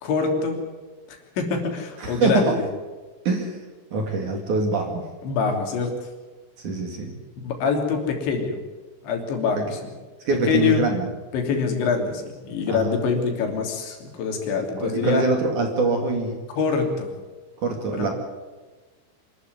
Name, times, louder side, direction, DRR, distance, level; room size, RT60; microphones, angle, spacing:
voice 1, 0.0-0.6 1.1-2.6 5.2-6.1 7.4-8.6 9.0-9.9 10.5-10.8 11.3-15.2 16.5-17.1 17.9-18.1, left 5 dB, 70° left, 3 dB, 5.3 m, -25 dB
voice 2, 2.0-2.5 3.2-3.6 3.9-5.0 6.6-7.2 9.5-9.6 10.2-11.1 12.7-13.0 14.6-16.4 17.6-18.1, right 4 dB, 50° right, 3 dB, 3.3 m, -24 dB
26.0 x 13.0 x 9.6 m, 1.3 s
omnidirectional pair, 5.4 m